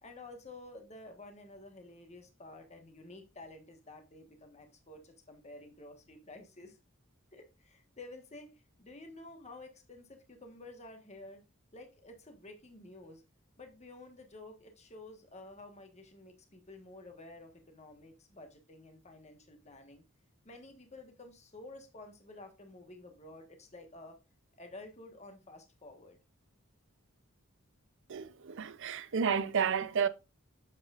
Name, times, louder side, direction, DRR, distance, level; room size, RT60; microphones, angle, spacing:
voice 1, 0.0-6.8 7.3-11.4 11.7-13.2 13.6-20.0 20.4-24.2 24.6-26.2, left 2 dB, 30° left, 1.4 m, -51 dB
voice 2, 28.1-30.1, right 6 dB, 60° right, 0.6 m, -31 dB
8.1 x 7.5 x 2.4 m
head